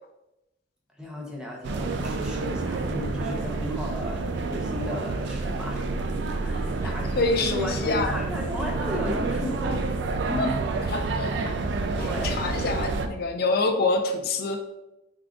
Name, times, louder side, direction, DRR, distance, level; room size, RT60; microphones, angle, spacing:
voice 1, 1.0-5.9 6.3-9.9 10.2-11.2 11.9-12.4, left 1 dB, 5° right, -1 dB, 0.6 m, -34 dB
sound 1, 1.6-13.1, right 3 dB, 60° right, 0.3 m, -29 dB
voice 2, 6.8-8.1 10.4-10.5 10.9-11.3 12.0-14.7, left 3 dB, 50° left, 4 dB, 0.4 m, -26 dB
3.7 x 2.3 x 3.5 m, 0.93 s
head